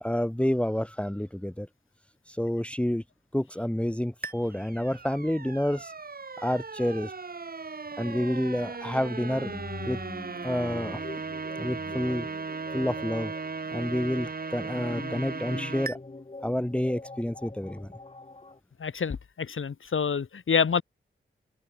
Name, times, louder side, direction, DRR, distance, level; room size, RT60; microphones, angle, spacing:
voice 1, 0.0-1.7 2.3-3.0 3.3-5.9 6.4-7.1 8.0-9.5 9.8-10.0 10.4-11.0 11.6-12.3 12.7-13.3 13.7-16.0 16.4-17.9, left 1 dB, 5° left, 2.0 m, -29 dB
sound 1, 4.2-15.9, right 4 dB, 45° right, 4.2 m, -37 dB
sound 2, 8.0-18.6, left 3 dB, 30° left, 6.8 m, -43 dB
voice 2, 18.8-20.8, left 6 dB, 75° left, 4.7 m, -27 dB
wide cardioid pair, 120°, 21 cm